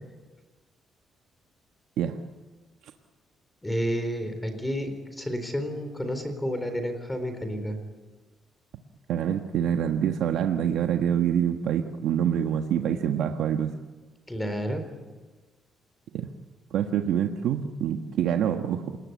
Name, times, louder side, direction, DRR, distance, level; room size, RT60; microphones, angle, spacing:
voice 1, 3.6-7.8 14.3-14.8, equal, 10° left, 8 dB, 4.1 m, -30 dB
voice 2, 9.1-13.7 16.1-16.3 16.7-19.0, right 9 dB, 80° right, 5 dB, 1.3 m, -26 dB
28.0 x 20.0 x 9.5 m, 1.3 s
cardioid pair, 120°, 0 cm